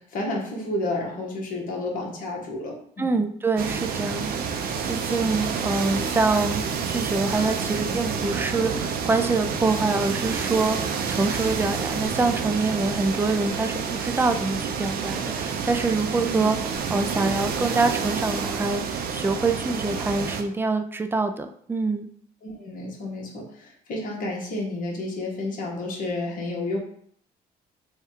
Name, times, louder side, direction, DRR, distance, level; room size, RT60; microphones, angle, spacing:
voice 1, 0.0-3.2 16.2-16.5 22.4-26.8, left 2 dB, 55° left, -1 dB, 1.2 m, -31 dB
voice 2, 3.0-22.1, right 3 dB, 15° right, 8 dB, 0.3 m, -25 dB
sound 1, 3.6-20.4, right 6 dB, 65° right, 0.6 m, -29 dB
3.4 x 2.3 x 4.4 m, 0.62 s
cardioid pair, 110°, 17 cm